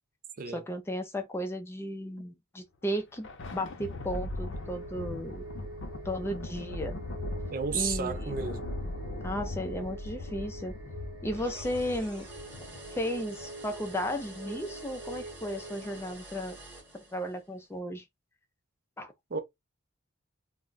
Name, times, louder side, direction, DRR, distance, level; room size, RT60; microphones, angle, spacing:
voice 1, 0.5-5.4 6.0-7.0 7.7-8.3 9.2-10.8 11.2-12.3 12.9-16.6 16.9-18.0 19.0-19.1, equal, 10° left, 0.4 m, -35 dB
Thunder, 2.8-13.6, left 2 dB, 60° left, 0.6 m, -39 dB
sound 1, 4.5-16.1, right 2 dB, 70° right, 0.9 m, -46 dB
voice 2, 7.5-8.6 19.3-19.4, right 5 dB, 45° right, 0.5 m, -32 dB
sound 2, 11.3-17.5, right 1 dB, 10° right, 1.0 m, -48 dB
2.2 x 2.1 x 3.8 m
head